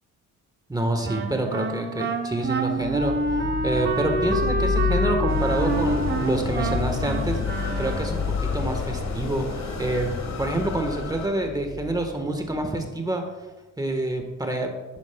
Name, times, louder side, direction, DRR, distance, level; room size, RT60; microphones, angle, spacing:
voice 1, 0.7-7.4 7.8-9.4 9.8-10.1 10.4-13.3 13.8-14.7, right 1 dB, 10° right, 4 dB, 1.3 m, -27 dB
Wind instrument woodwind instrument, 1.0-8.3, right 3 dB, 35° right, 0.8 m, -27 dB
sound 1, 2.8-12.6, left 6 dB, 40° left, 1.5 m, -30 dB
sound 2, 5.3-11.3, left 4 dB, 60° left, 1.5 m, -32 dB
10.5 x 8.7 x 2.2 m, 1.2 s
cardioid pair, 90°, 30 cm